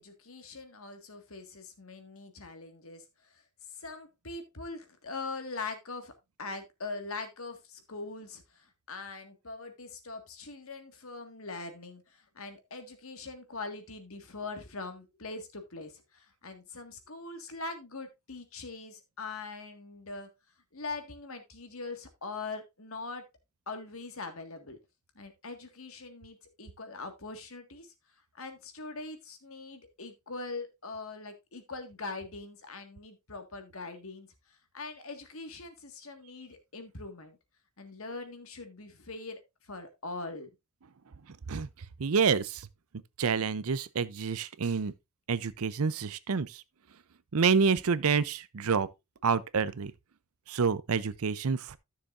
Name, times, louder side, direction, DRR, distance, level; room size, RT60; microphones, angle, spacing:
voice 1, 0.0-3.4 3.7-20.3 20.7-23.3 23.7-24.8 25.2-27.9 28.3-37.4 37.8-40.5, left 3 dB, 65° left, 1.8 m, -42 dB
voice 2, 42.0-42.7 43.2-44.9 45.3-46.6 47.3-48.9 49.2-49.9 50.5-51.8, right 5 dB, 70° right, 0.6 m, -28 dB
13.0 x 6.8 x 2.5 m
head